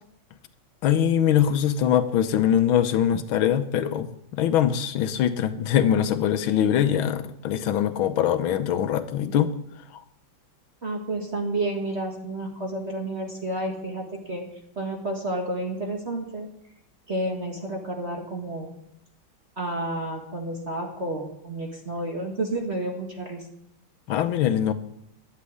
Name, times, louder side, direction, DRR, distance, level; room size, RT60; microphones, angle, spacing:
voice 1, 0.8-9.5 9.9-10.0 24.1-24.7, left 9 dB, 85° left, 11 dB, 1.7 m, -22 dB
voice 2, 10.8-14.4 14.8-16.5 17.1-18.7 19.6-23.4, right 1 dB, 35° right, 2 dB, 1.8 m, -30 dB
11.5 x 7.6 x 9.8 m, 0.76 s
omnidirectional pair, 2.2 m